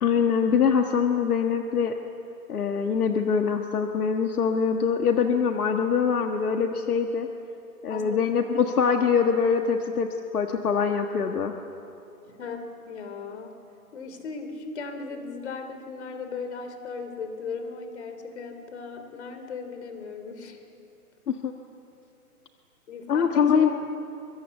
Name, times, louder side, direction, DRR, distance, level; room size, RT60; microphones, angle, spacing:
voice 1, 0.0-1.9 2.5-7.3 7.8-11.5 21.3-21.5 23.1-23.7, left 6 dB, 70° left, 5 dB, 1.6 m, -23 dB
voice 2, 7.9-8.5 12.3-13.6 13.9-20.6 22.9-23.7, left 4 dB, 45° left, 7 dB, 3.2 m, -37 dB
24.5 x 23.5 x 8.3 m, 2.8 s
hypercardioid pair, 165°, 46 cm